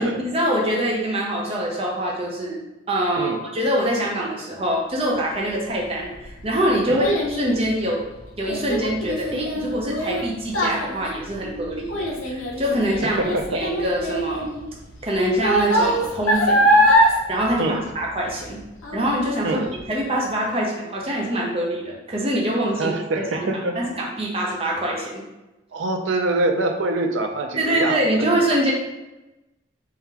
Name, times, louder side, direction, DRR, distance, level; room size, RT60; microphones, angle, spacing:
voice 1, 0.0-2.6 2.9-8.0 8.4-14.5 15.0-18.6 18.9-19.6 19.9-22.9 23.3-23.5 23.8-25.2 27.5-28.7, right 1 dB, 30° right, -3 dB, 0.6 m, -24 dB
Child speech kid speaking, 5.8-18.5 18.8-19.3 19.8-19.9, equal, 85° left, 0.7 m, -23 dB
voice 2, 13.2-13.6 17.6-17.8 19.4-19.7 22.8-23.7 25.7-28.3, right 2 dB, 70° right, 4 dB, 0.5 m, -25 dB
3.7 x 3.4 x 2.9 m, 1.0 s
head